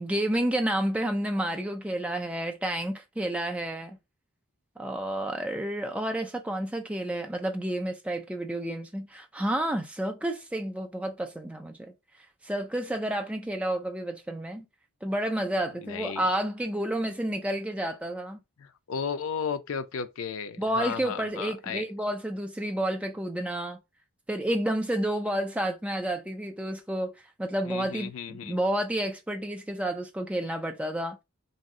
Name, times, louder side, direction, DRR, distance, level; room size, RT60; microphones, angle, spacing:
voice 1, 0.0-4.0 4.8-11.9 12.4-14.7 15.0-18.4 20.6-23.8 24.3-31.2, right 1 dB, 5° right, 0.3 m, -30 dB
voice 2, 15.8-16.3 18.6-21.8 27.7-28.6, left 6 dB, 70° left, 0.4 m, -34 dB
2.6 x 2.0 x 3.6 m
head